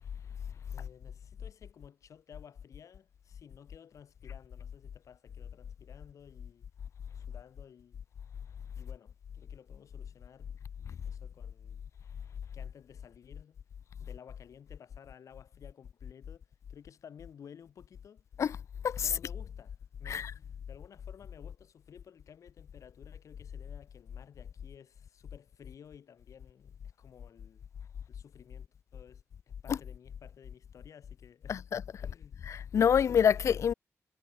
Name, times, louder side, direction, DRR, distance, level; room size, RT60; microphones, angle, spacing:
voice 1, 0.7-6.7 7.1-8.0 8.8-10.5 11.0-11.8 12.5-13.6 14.0-18.2 19.0-27.7 28.1-31.7 32.0-32.4, left 8 dB, 80° left, 4.2 m, -55 dB
voice 2, 31.5-31.8 32.5-33.7, left 8 dB, 65° left, 0.4 m, -26 dB
wide cardioid pair, 110°, 5 cm